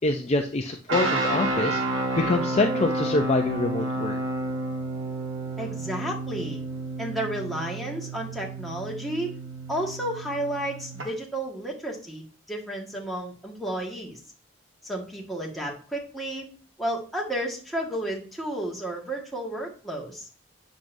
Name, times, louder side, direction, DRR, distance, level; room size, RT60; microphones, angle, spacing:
voice 1, 0.0-1.8 2.3-4.2, left 2 dB, 30° left, 4 dB, 0.5 m, -25 dB
sound 1, 0.9-11.1, right 2 dB, 65° right, 1.4 m, -30 dB
voice 2, 5.6-6.6 7.0-9.3 9.7-14.2 14.8-16.5 16.8-20.3, right 1 dB, ahead, -2 dB, 1.5 m, -32 dB
8.8 x 6.0 x 2.6 m, 0.40 s
head